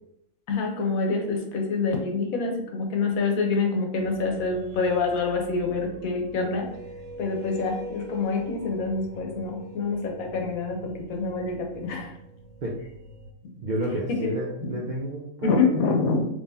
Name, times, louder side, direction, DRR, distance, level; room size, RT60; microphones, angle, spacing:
voice 1, 0.5-6.7 7.2-12.1 14.2-14.3 15.4-16.3, left 4 dB, 90° left, 2 dB, 1.2 m, -26 dB
sound 1, 4.0-13.3, right 2 dB, 70° right, 0.9 m, -42 dB
voice 2, 13.6-15.5, right 1 dB, 55° right, -3 dB, 0.5 m, -30 dB
3.8 x 3.2 x 2.6 m, 0.80 s
omnidirectional pair, 1.4 m